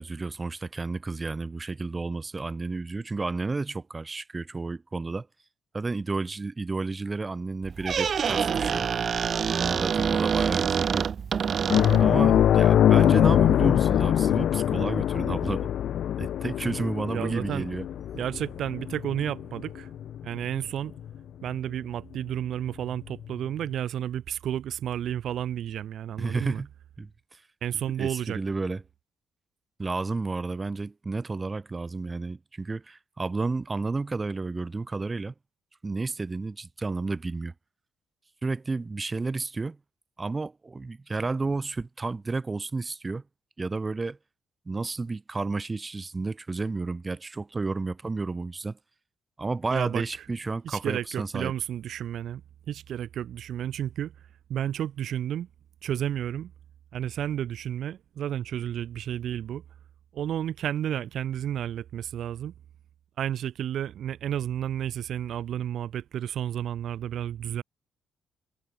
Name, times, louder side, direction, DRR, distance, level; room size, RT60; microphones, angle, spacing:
voice 1, 0.0-5.3 5.7-8.9 9.5-11.1 12.0-15.7 16.2-17.8 26.2-26.7 27.0-27.4 28.0-28.8 29.8-35.3 35.8-37.5 38.4-39.8 40.2-43.2 43.6-44.2 44.6-48.8 49.4-51.5, right 3 dB, 25° right, 1.7 m, -31 dB
Squeak, 7.6-12.2, right 7 dB, 50° right, 0.4 m, -26 dB
sound 1, 11.7-20.6 21.0-21.2 23.2-23.3, left 10 dB, 70° left, 1.2 m, -23 dB
voice 2, 17.1-17.7 18.1-19.9 20.2-20.9 21.4-26.6 27.6-28.4 49.7-50.0 50.6-52.4 52.7-54.1 54.5-55.5 55.8-56.5 56.9-59.6 60.1-62.5 63.2-67.6, right 10 dB, 70° right, 1.8 m, -31 dB
cardioid pair, 90°, 0 cm